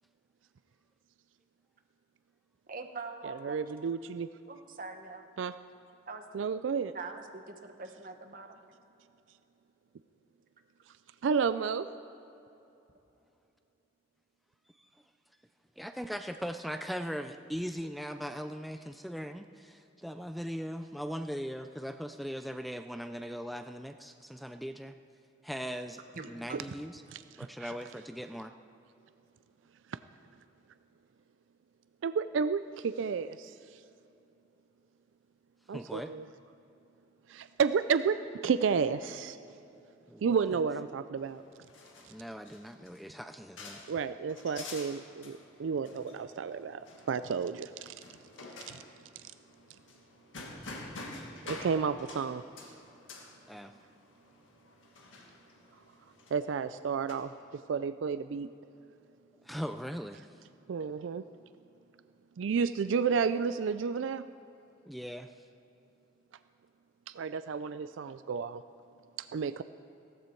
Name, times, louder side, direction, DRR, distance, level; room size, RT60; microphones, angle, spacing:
voice 1, 2.7-3.6 4.5-5.2 6.1-6.2 6.9-8.6 26.1-26.6, right 3 dB, 45° right, 6 dB, 1.2 m, -43 dB
voice 2, 3.2-4.3 5.4-5.5 6.3-6.9 11.2-11.9 26.5-26.6 27.1-27.5 32.0-33.5 35.7-36.3 37.3-39.4 40.2-41.4 43.9-47.9 48.7-48.8 49.2-49.3 51.5-52.4 56.3-57.3 57.7-58.5 60.7-61.2 62.4-64.2 67.1-68.6 69.2-69.6, right 6 dB, 75° right, 12 dB, 0.4 m, -31 dB
voice 3, 15.8-25.0 25.4-26.0 26.3-27.0 27.4-28.5 35.7-36.1 40.1-40.3 42.1-43.8 53.5-53.7 59.4-60.3 64.9-65.3, equal, ahead, 8 dB, 0.3 m, -39 dB
sound 1, 41.2-57.1, left 2 dB, 90° left, 1.8 m, -49 dB
16.0 x 14.5 x 4.5 m, 2.9 s
head